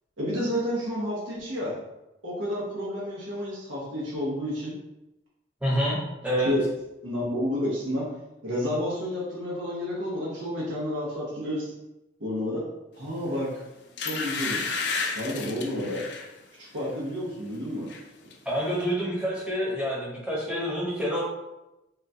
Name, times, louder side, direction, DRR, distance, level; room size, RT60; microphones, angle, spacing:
voice 1, 0.2-1.7 2.2-4.7 6.4-6.6 7.0-8.0 8.4-11.7 12.2-12.6 12.9-13.6 14.0-14.6 15.1-16.0 16.6-17.9, left 1 dB, 80° right, -6 dB, 0.8 m, -30 dB
voice 2, 5.6-6.0 6.2-6.5 18.5-21.2, equal, 5° right, -5 dB, 0.7 m, -27 dB
sound 1, 13.3-13.5 14.0-16.3 16.8-17.0 17.3-18.0 18.3-18.4, left 4 dB, 60° left, 0.3 m, -32 dB
3.7 x 2.2 x 2.7 m, 0.97 s
head